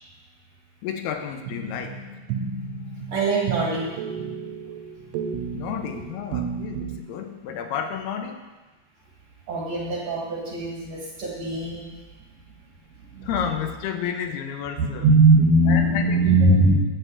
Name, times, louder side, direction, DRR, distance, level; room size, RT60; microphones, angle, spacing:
voice 1, 0.8-2.0 5.5-8.4 13.2-15.1 15.7-16.3, left 8 dB, 85° left, 6 dB, 2.6 m, -31 dB
sound 1, 1.5-7.0, right 5 dB, 80° right, 2.7 m, -32 dB
voice 2, 3.1-3.9 9.5-11.9 13.1-13.3 14.8-16.8, right 2 dB, 50° right, -4 dB, 2.3 m, -20 dB
9.0 x 6.1 x 7.9 m, 1.2 s
omnidirectional pair, 4.7 m